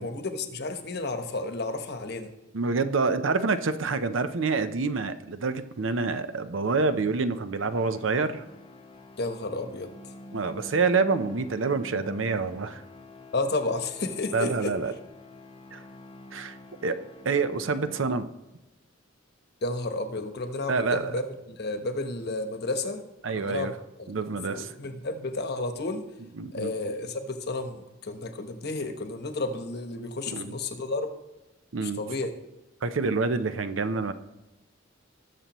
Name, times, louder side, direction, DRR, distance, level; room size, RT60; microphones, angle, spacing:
voice 1, 0.0-2.3 9.2-10.1 13.3-14.8 19.6-21.2 21.6-23.0 23.3-24.1 24.5-26.0 26.5-31.1 31.8-32.3, left 2 dB, 55° left, 7 dB, 1.1 m, -32 dB
voice 2, 2.5-8.5 10.3-12.8 14.3-14.9 15.7-15.8 16.3-16.6 16.8-17.0 17.2-18.3 20.7-21.2 23.2-23.7 24.1-24.7 26.4-26.9 30.3-30.6 31.7-32.0 32.8-34.1, right 4 dB, 70° right, 11 dB, 0.7 m, -27 dB
sound 1, 7.7-18.5, left 1 dB, 25° left, 0.6 m, -47 dB
20.0 x 6.8 x 3.0 m, 1.0 s
head